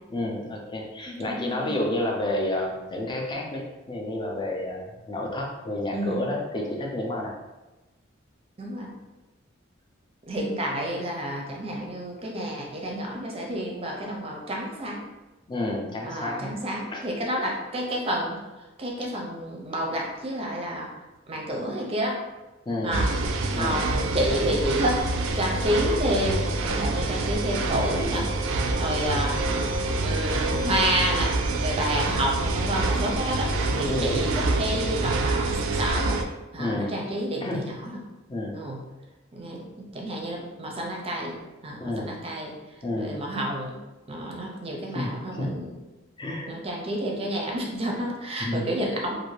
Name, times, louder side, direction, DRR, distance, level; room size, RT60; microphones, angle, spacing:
voice 1, 0.1-7.3 15.5-16.5 16.9-17.1 22.7-23.2 23.5-23.9 33.9-34.2 36.6-37.0 37.4-37.7 38.3-38.6 41.8-42.1 42.8-43.2 44.9-45.5 46.2-46.5 48.4-48.6, left 1 dB, 25° left, -1 dB, 0.5 m, -30 dB
voice 2, 1.1-1.7 5.9-6.2 8.6-8.9 10.3-15.0 16.0-18.4 18.8-20.9 21.3-22.2 22.8-23.1 23.5-25.0 25.4-28.3 28.8-29.4 30.0-31.3 31.6-36.2 36.5-38.0 38.5-38.8 39.3-42.5 43.0-43.8 44.1-45.7 46.5-49.1, equal, 30° right, 0 dB, 0.5 m, -29 dB
sound 1, 22.9-36.2, right 2 dB, 90° right, 0.4 m, -26 dB
2.6 x 2.5 x 3.1 m, 1.1 s
head